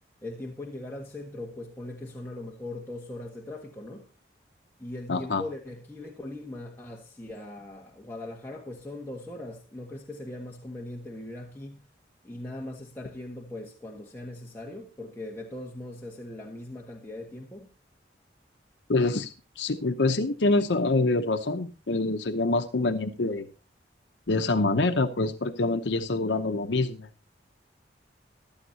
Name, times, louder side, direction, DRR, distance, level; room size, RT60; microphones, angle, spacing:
voice 1, 0.2-4.1 4.8-11.8 12.2-17.7, left 1 dB, 10° left, 1.5 m, -40 dB
voice 2, 5.1-5.4 18.9-23.5 24.3-27.1, left 2 dB, 75° left, 0.8 m, -26 dB
15.5 x 12.0 x 2.8 m
head